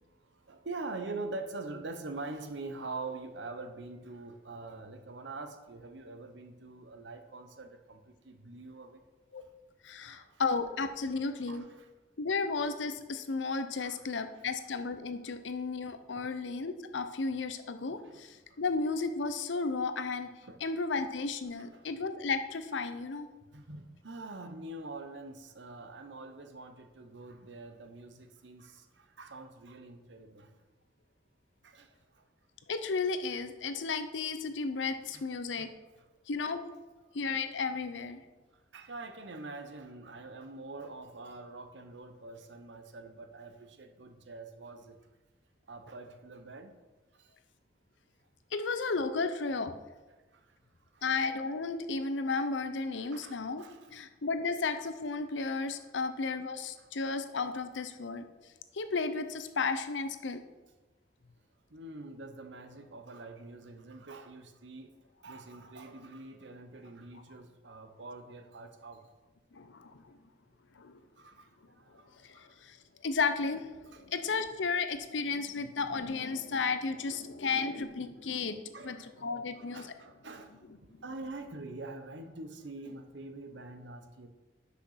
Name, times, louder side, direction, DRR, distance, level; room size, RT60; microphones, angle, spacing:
voice 1, 0.5-9.0 10.1-10.4 11.5-11.7 13.8-14.0 16.1-16.3 18.0-18.2 20.4-20.6 21.7-21.9 23.5-30.5 31.6-31.9 35.1-35.2 35.6-35.7 38.7-45.0 45.7-46.7 50.9-51.1 53.1-53.9 61.7-64.9 65.2-69.0 71.2-71.5 71.8-72.5 73.9-74.0 78.7-80.5 81.0-84.3, right 3 dB, 80° right, 7 dB, 0.9 m, -44 dB
voice 2, 9.8-11.6 12.2-20.3 20.6-23.3 32.7-35.7 36.3-36.6 37.1-38.2 48.5-49.7 51.0-53.7 53.9-58.3 58.7-60.4 69.5-70.0 70.8-71.0 72.2-72.8 73.0-79.9, left 4 dB, 85° left, 9 dB, 0.7 m, -33 dB
6.3 x 5.7 x 5.8 m, 1.2 s
head